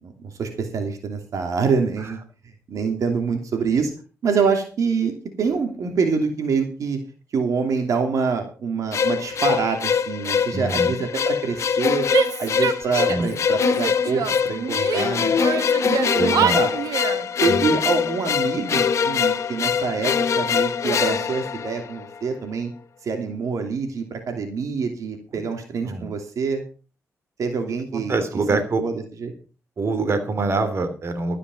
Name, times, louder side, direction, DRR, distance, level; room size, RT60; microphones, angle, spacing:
voice 1, 0.0-2.2 2.7-3.9 4.2-5.1 5.4-7.0 7.3-12.1 12.4-15.3 15.8-16.7 17.4-22.7 23.0-26.6 27.4-28.1 28.8-28.9 29.2-29.3, right 5 dB, 65° right, 5 dB, 2.9 m, -25 dB
sound 1, 8.9-22.2, left 7 dB, 55° left, 1.2 m, -23 dB
voice 2, 10.5-11.0 12.9-13.3 16.1-16.6 17.5-17.7 25.3-25.4 25.8-26.1 27.9-28.8 29.8-31.4, right 3 dB, 45° right, 8 dB, 3.0 m, -25 dB
Female speech woman speaking / Yell, 12.1-13.3 13.6-15.1 15.4-17.2, right 8 dB, 85° right, 1.3 m, -26 dB
13.5 x 9.9 x 5.4 m, 0.35 s
cardioid pair, 95°, 6 cm